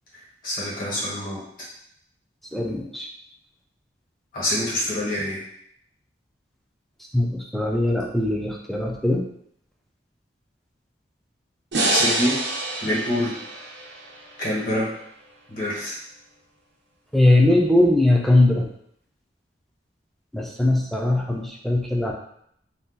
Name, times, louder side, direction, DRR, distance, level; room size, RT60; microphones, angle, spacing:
voice 1, 0.4-1.4 4.3-5.4 11.9-12.4 12.8-13.3 14.4-14.9 15.5-15.9, left 1 dB, 50° left, -6 dB, 1.3 m, -25 dB
voice 2, 2.5-3.1 7.1-9.3 17.1-18.7 20.3-22.1, left 1 dB, ahead, 0 dB, 0.3 m, -20 dB
sound 1, 11.7-14.9, right 2 dB, 80° right, 0.7 m, -27 dB
2.6 x 2.3 x 3.7 m, 0.70 s
head